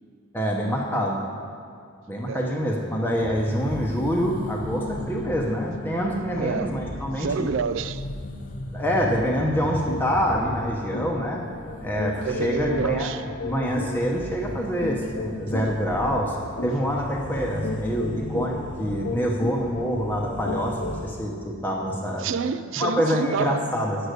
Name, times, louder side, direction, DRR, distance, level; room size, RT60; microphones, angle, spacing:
voice 1, 0.3-1.2 2.1-7.5 8.7-11.4 11.8-13.1 13.4-16.4 16.6-22.3 22.8-24.0, equal, 10° left, 0.8 m, -26 dB
sound 1, 3.2-21.2, left 1 dB, 35° left, 0.5 m, -36 dB
voice 2, 6.3-6.7 7.1-8.1 12.2-13.2 22.2-23.6, right 6 dB, 60° right, 0.3 m, -28 dB
sound 2, 9.9-10.1 10.4-10.6 10.9-21.2, left 2 dB, 55° left, 0.9 m, -35 dB
8.7 x 6.6 x 8.0 m
head